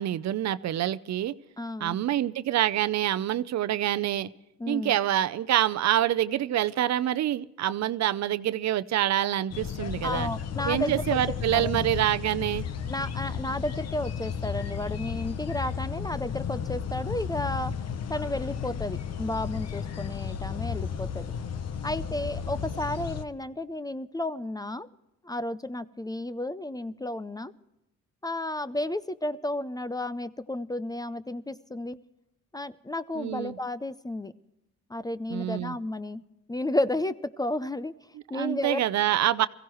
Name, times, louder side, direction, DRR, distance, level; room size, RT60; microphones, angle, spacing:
voice 1, 0.0-1.3 1.8-4.3 4.7-10.3 10.7-12.7 33.2-33.6 35.3-35.8 38.3-39.5, right 12 dB, 60° right, 13 dB, 0.6 m, -26 dB
voice 2, 1.6-2.0 4.6-5.0 10.0-11.2 11.5-11.8 12.9-17.7 18.1-21.3 21.8-24.9 25.2-27.5 28.2-32.0 32.5-34.3 34.9-36.2 36.5-38.8, left 1 dB, 15° left, 15 dB, 0.5 m, -32 dB
sound 1, 9.5-23.3, left 7 dB, 55° left, 1.0 m, -33 dB
22.5 x 15.5 x 3.1 m, 0.93 s
cardioid pair, 90°, 30 cm